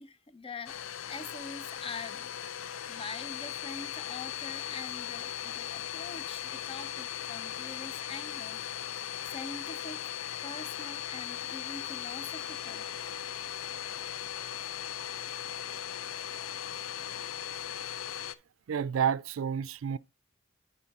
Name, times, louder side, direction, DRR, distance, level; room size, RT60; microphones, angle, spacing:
voice 1, 0.0-2.3 2.9-10.1 10.4-12.9, left 3 dB, 30° left, 0.5 m, -44 dB
Domestic sounds home sounds, 0.7-18.4, left 10 dB, 85° left, 0.5 m, -38 dB
voice 2, 18.7-20.0, right 7 dB, 80° right, 0.4 m, -30 dB
10.5 x 4.3 x 4.0 m
head